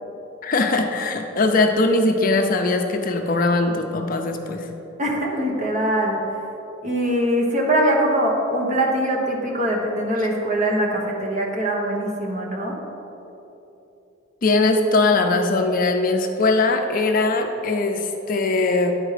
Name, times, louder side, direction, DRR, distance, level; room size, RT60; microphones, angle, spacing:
voice 1, 0.4-4.7 14.4-18.9, left 3 dB, 45° left, 4 dB, 0.5 m, -20 dB
voice 2, 5.0-6.2 6.8-12.8, right 1 dB, 35° right, -1 dB, 1.1 m, -22 dB
9.9 x 4.5 x 4.9 m, 3.0 s
head